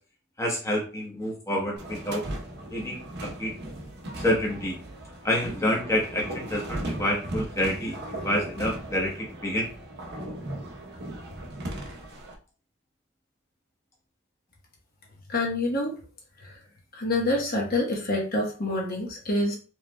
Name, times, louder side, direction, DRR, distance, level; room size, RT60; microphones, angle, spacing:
voice 1, 0.4-2.2 2.7-3.5 4.2-4.8 5.2-9.7, left 1 dB, 15° left, -2 dB, 1.0 m, -28 dB
sound 1, 1.8-12.3, right 1 dB, 55° right, 0.8 m, -37 dB
voice 2, 15.3-16.0 16.4-16.5 16.9-19.6, left 2 dB, 50° left, 0 dB, 1.0 m, -27 dB
4.6 x 3.2 x 2.2 m, 0.36 s
head